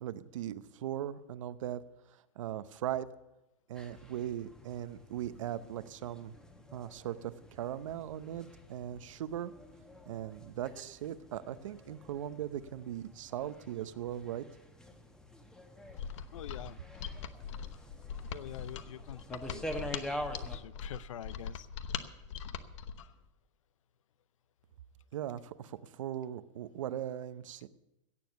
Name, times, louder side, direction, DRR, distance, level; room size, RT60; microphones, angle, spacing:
voice 1, 0.0-1.8 2.1-3.1 3.7-6.3 6.7-9.5 10.1-14.4 25.1-27.7, right 11 dB, 80° right, 14 dB, 0.8 m, -39 dB
sound 1, 3.7-20.6, equal, 5° left, 1.1 m, -47 dB
Mechanisms, 15.9-23.1, left 8 dB, 70° left, 1.0 m, -41 dB
voice 2, 16.3-16.8 18.3-21.7, left 10 dB, 90° left, 19 dB, 0.6 m, -46 dB
17.0 x 7.1 x 8.1 m, 0.95 s
supercardioid pair, 145°, 16 cm